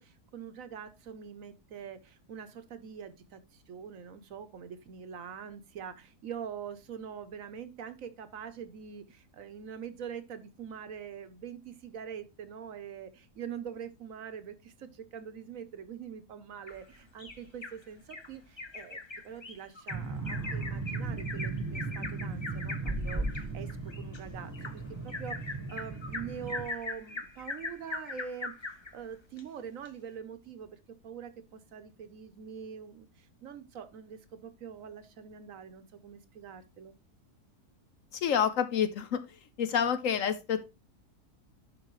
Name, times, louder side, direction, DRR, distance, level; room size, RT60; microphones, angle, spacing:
voice 1, 0.0-19.0 19.2-30.8 31.0-36.9, right 7 dB, 65° right, 11 dB, 1.1 m, -44 dB
Bird vocalization bird call bird song, 16.7-17.8 18.1-18.3 18.6-28.9 29.4-29.5 29.9-30.0, left 3 dB, 25° left, 0.6 m, -41 dB
sound 1, 19.9-26.7, right 3 dB, 10° right, 1.1 m, -36 dB
voice 2, 38.1-39.2 39.6-40.6, left 8 dB, 65° left, 12 dB, 1.0 m, -28 dB
11.0 x 4.4 x 3.1 m, 0.26 s
omnidirectional pair, 1.7 m